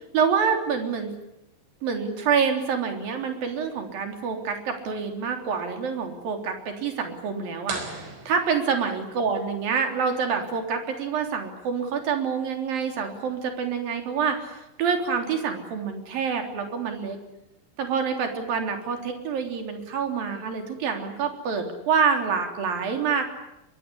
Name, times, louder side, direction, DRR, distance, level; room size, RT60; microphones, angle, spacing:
voice 1, 0.1-1.1 1.8-17.2 17.8-23.3, right 6 dB, 50° right, 5 dB, 5.0 m, -27 dB
sound 1, 7.7-9.4, right 4 dB, 70° right, 7.4 m, -38 dB
25.0 x 22.5 x 9.9 m, 0.88 s
omnidirectional pair, 5.5 m